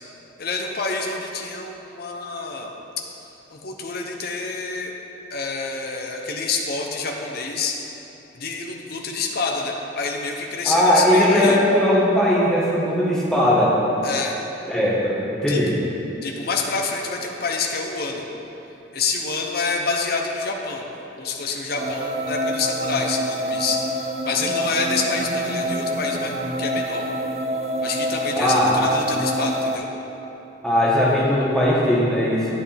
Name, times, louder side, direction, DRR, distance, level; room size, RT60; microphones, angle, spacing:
voice 1, 0.4-2.7 3.5-4.9 5.3-7.8 8.3-11.6 14.0-14.3 15.5-15.8 16.2-18.3 18.9-20.9 21.2-27.1 27.8-29.9, left 4 dB, 50° left, 1 dB, 0.7 m, -27 dB
voice 2, 10.6-13.8 14.7-15.7 28.4-28.7 30.6-32.5, left 1 dB, 5° left, -7 dB, 1.3 m, -19 dB
sound 1, 21.8-29.8, equal, 35° right, 0.4 m, -26 dB
9.5 x 8.3 x 3.4 m, 3.0 s
head